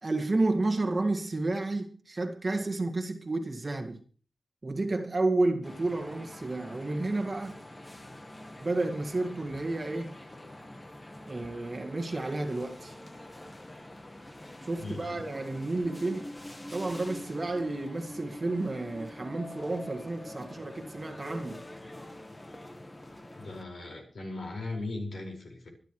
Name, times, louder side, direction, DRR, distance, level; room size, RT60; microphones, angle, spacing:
voice 1, 0.0-4.0 4.6-7.6 8.6-10.2 11.3-13.0 14.6-16.3 16.7-21.6, right 2 dB, 30° right, 1.8 m, -31 dB
sound 1, 5.6-23.6, left 1 dB, 15° left, 1.2 m, -45 dB
voice 2, 14.8-15.2 23.4-25.7, left 2 dB, 55° left, 5.1 m, -38 dB
25.5 x 10.5 x 3.2 m
wide cardioid pair, 160°, 0 cm